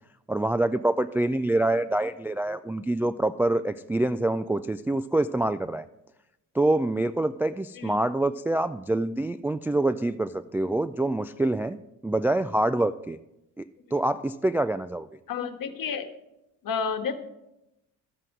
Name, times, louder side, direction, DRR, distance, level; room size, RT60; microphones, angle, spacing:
voice 1, 0.3-5.9 6.5-11.8 12.0-13.2 13.6-15.1, right 2 dB, 5° right, 11 dB, 0.3 m, -26 dB
voice 2, 15.3-16.1 16.6-17.2, left 6 dB, 50° left, 7 dB, 1.5 m, -30 dB
13.0 x 7.6 x 6.1 m, 0.89 s
hypercardioid pair, 50°, 42 cm